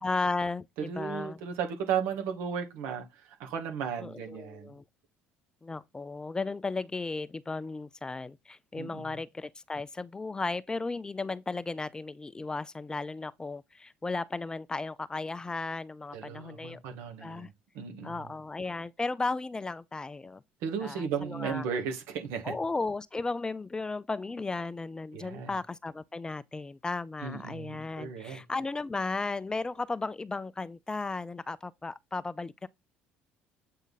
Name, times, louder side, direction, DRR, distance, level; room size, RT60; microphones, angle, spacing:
voice 1, 0.0-1.4 4.0-4.8 5.6-16.8 17.2-17.5 18.0-20.4 20.8-21.7 22.4-32.7, left 3 dB, 20° left, 0.5 m, -35 dB
voice 2, 0.8-4.7 8.7-9.2 16.1-18.3 20.6-22.5 25.1-25.5 27.2-28.4, right 7 dB, 80° right, 1.9 m, -35 dB
8.4 x 3.9 x 4.0 m
supercardioid pair, 90°, 4 cm